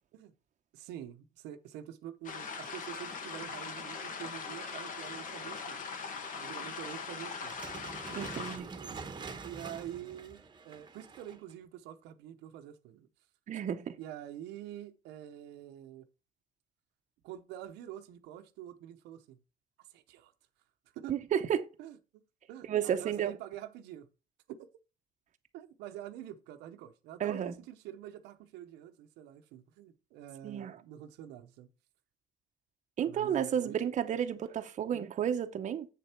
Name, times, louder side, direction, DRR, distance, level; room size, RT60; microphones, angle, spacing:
voice 1, 0.7-5.8 6.3-7.6 8.1-8.5 8.7-9.0 9.4-13.1 14.0-16.1 17.2-19.4 19.9-20.3 20.9-21.2 21.8-22.0 22.5-24.1 24.5-24.7 25.5-31.7 33.0-33.8, right 11 dB, 90° right, 0.9 m, -46 dB
sound 1, 2.2-8.6, left 5 dB, 50° left, 1.7 m, -41 dB
sound 2, 7.3-11.5, right 4 dB, 25° right, 1.1 m, -45 dB
voice 2, 8.1-8.7 13.5-13.9 21.1-21.6 22.7-23.3 27.2-27.5 30.4-30.8 33.0-35.9, right 9 dB, 45° right, 0.8 m, -32 dB
7.6 x 6.9 x 4.4 m
cardioid pair, 110°, 17 cm